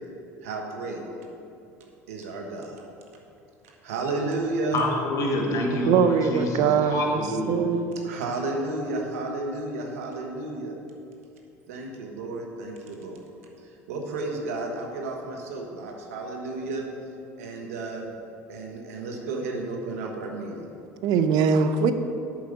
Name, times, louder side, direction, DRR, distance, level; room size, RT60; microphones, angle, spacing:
voice 1, 0.4-1.0 2.1-2.8 3.8-4.8 8.0-10.7 11.7-13.2 13.9-16.8 17.4-18.1 18.5-20.7, right 2 dB, 80° right, 0 dB, 1.2 m, -32 dB
voice 2, 4.7-7.6, left 1 dB, 45° left, 1 dB, 1.7 m, -27 dB
voice 3, 5.9-7.8 21.0-21.9, right 6 dB, 60° right, 8 dB, 0.6 m, -22 dB
7.7 x 4.7 x 7.1 m, 2.7 s
hypercardioid pair, 70°, 8 cm